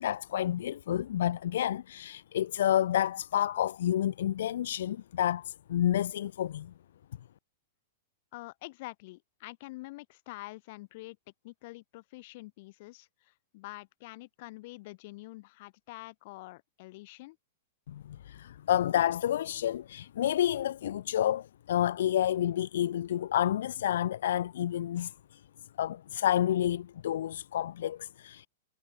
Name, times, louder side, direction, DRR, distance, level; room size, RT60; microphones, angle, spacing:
voice 1, 0.0-6.7 17.9-25.4 25.8-28.5, left 11 dB, 65° left, 0.3 m, -29 dB
voice 2, 8.3-11.2 11.4-17.4, left 21 dB, 35° left, 1.7 m, -46 dB
supercardioid pair, 175°, 0 cm